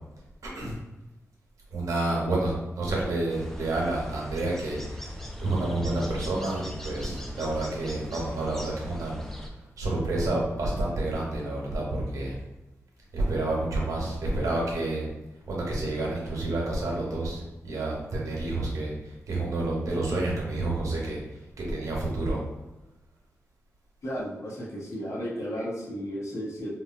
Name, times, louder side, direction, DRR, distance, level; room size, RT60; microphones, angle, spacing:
voice 1, 1.7-5.2 5.4-9.2 9.8-12.4 13.1-15.1 15.5-21.2 21.6-22.4, right 2 dB, 85° right, -3 dB, 0.8 m, -29 dB
sound 1, 3.3-9.5, equal, 5° left, 0.4 m, -40 dB
voice 2, 24.0-26.7, equal, 65° left, -3 dB, 0.8 m, -34 dB
3.0 x 2.3 x 2.4 m, 1.0 s
cardioid pair, 75°, 5 cm